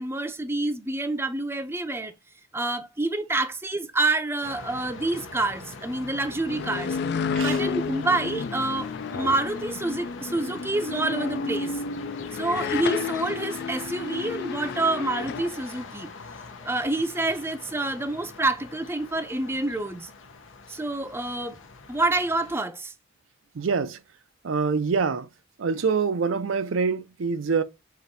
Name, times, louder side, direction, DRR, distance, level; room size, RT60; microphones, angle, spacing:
voice 1, 0.0-2.1 2.5-7.0 7.4-11.7 12.3-16.1 16.6-20.1 20.7-21.6 21.9-22.9, right 2 dB, 10° right, 0.5 m, -27 dB
sound 1, 4.4-22.6, left 4 dB, 85° left, 0.8 m, -43 dB
sound 2, 6.5-15.4, left 4 dB, 60° left, 0.4 m, -31 dB
voice 2, 23.6-24.0 24.4-25.3 25.6-27.6, right 5 dB, 85° right, 0.5 m, -25 dB
5.9 x 2.7 x 2.6 m
head